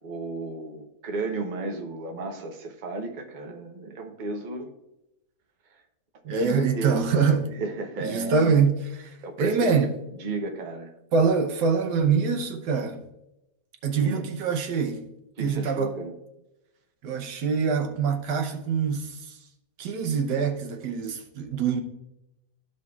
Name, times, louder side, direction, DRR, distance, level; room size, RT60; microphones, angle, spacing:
voice 1, 0.0-4.7 5.7-5.8 6.3-7.1 7.5-8.7 9.2-10.9 14.0-14.3 15.4-16.1, right 3 dB, 35° right, 0.8 m, -33 dB
voice 2, 6.2-7.5 8.0-9.9 11.1-13.0 13.8-15.0 15.4-15.9 17.0-19.4 19.8-21.8, right 5 dB, 80° right, 1.5 m, -24 dB
14.0 x 5.1 x 2.4 m
omnidirectional pair, 1.8 m